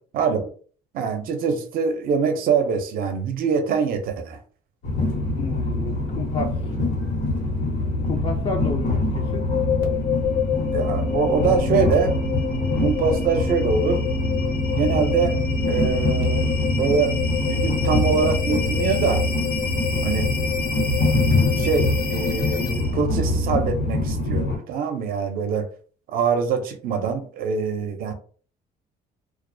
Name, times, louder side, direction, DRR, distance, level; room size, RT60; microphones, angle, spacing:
voice 1, 0.1-0.5 0.9-4.4 10.7-12.1 12.8-14.0 14.7-15.4 15.7-17.1 17.4-19.2 20.0-20.4 21.6-25.7 26.1-28.1, right 5 dB, 60° right, 7 dB, 0.5 m, -24 dB
Train, 4.8-24.6, left 2 dB, 85° left, 1.1 m, -24 dB
voice 2, 5.4-6.8 8.0-9.4, left 4 dB, 35° left, 1 dB, 0.3 m, -31 dB
sound 1, 9.2-23.1, left 6 dB, 65° left, 0.7 m, -28 dB
2.3 x 2.1 x 2.6 m, 0.43 s
cardioid pair, 110°, 17 cm